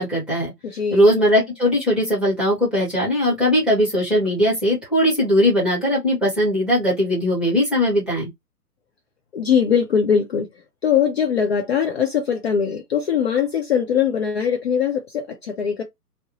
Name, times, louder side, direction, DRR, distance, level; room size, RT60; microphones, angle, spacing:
voice 1, 0.0-0.5 0.9-8.3, equal, ahead, 0.9 m, -19 dB
voice 2, 0.6-1.1 9.3-10.5 10.8-15.8, left 7 dB, 40° left, 0.6 m, -21 dB
2.5 x 2.0 x 2.8 m
figure-of-eight pair, 125°, 47 cm